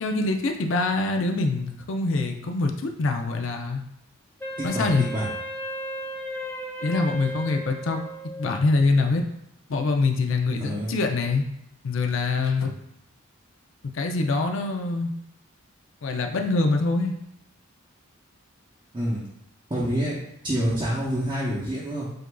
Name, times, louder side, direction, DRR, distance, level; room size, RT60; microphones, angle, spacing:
voice 1, 0.0-3.8 4.6-5.0 6.8-8.0 8.4-9.2 9.7-11.4 11.8-12.7 13.9-15.1 16.0-17.1, left 3 dB, 65° left, 4 dB, 0.5 m, -24 dB
Wind instrument woodwind instrument, 4.4-8.7, equal, 10° left, 0.4 m, -35 dB
voice 2, 4.6-5.3 10.6-11.0 18.9-19.2 19.7-20.2 20.4-22.1, equal, 25° right, -7 dB, 0.7 m, -27 dB
7.6 x 2.5 x 2.2 m, 0.77 s
head